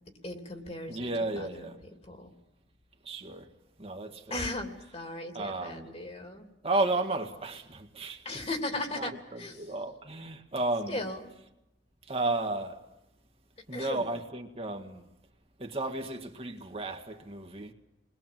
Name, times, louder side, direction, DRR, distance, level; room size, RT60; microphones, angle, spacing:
voice 1, 0.2-1.1 1.4-1.6 2.0-2.3 4.3-6.4 8.2-9.7 10.9-11.2 13.7-14.1, left 2 dB, 35° left, 3.1 m, -37 dB
voice 2, 0.9-1.8 3.0-3.5 3.8-4.4 5.3-5.9 6.6-8.3 8.9-11.0 12.0-12.8 13.7-15.0 15.6-17.7, right 2 dB, 35° right, 1.8 m, -33 dB
30.0 x 21.5 x 7.6 m
head